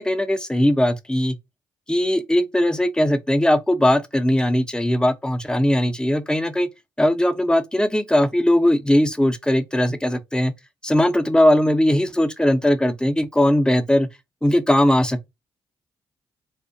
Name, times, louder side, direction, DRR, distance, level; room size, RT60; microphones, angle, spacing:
voice 1, 0.0-1.4 1.9-6.7 7.0-10.5 10.8-14.1 14.4-15.3, left 1 dB, 10° left, 0.5 m, -19 dB
2.7 x 2.1 x 2.6 m
supercardioid pair, 55°, 10 cm